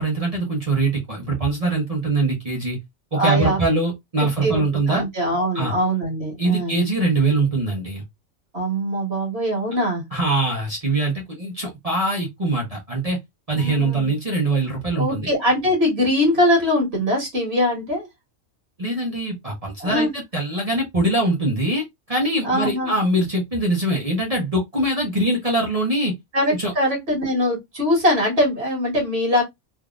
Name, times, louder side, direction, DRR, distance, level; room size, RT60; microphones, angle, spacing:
voice 1, 0.0-2.8 3.1-5.0 5.5-5.7 6.4-8.0 10.1-13.2 13.5-15.3 18.8-26.1 26.6-26.7, right 2 dB, 35° right, 1.0 m, -23 dB
voice 2, 3.1-3.6 4.4-6.8 8.5-10.0 13.5-14.1 14.9-18.1 19.8-20.1 22.4-22.9 26.3-29.4, equal, 60° right, 1.8 m, -22 dB
3.5 x 2.7 x 2.4 m
omnidirectional pair, 1.2 m